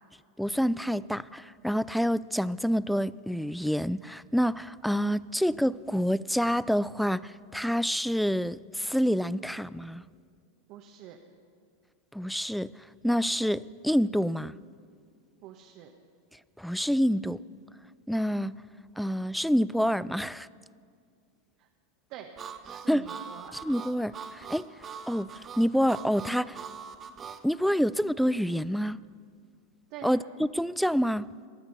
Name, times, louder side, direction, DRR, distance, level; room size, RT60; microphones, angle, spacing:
voice 1, 0.4-10.0 12.1-12.7 13.0-14.6 16.6-17.4 18.1-18.6 19.0-20.5 22.9-23.1 23.6-24.6 25.1-26.6 27.4-29.0 30.0-31.3, equal, ahead, 20 dB, 0.3 m, -27 dB
voice 2, 10.7-11.2 15.4-15.9 22.1-22.3 22.6-23.6 29.9-30.3, right 9 dB, 50° right, 3 dB, 1.1 m, -45 dB
Harmonica, 22.4-27.4, right 6 dB, 25° right, 0.9 m, -42 dB
22.5 x 8.8 x 5.7 m, 2.2 s
hypercardioid pair, 95°, 0 cm